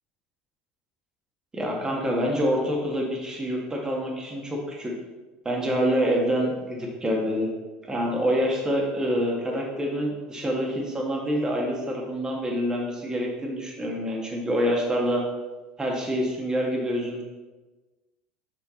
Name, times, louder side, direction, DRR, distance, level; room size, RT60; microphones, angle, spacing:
voice 1, 1.5-4.9 5.5-7.5 7.8-15.2 15.8-17.2, equal, 20° right, -1 dB, 1.8 m, -26 dB
5.7 x 5.4 x 3.9 m, 1.2 s
hypercardioid pair, 85°, 4 cm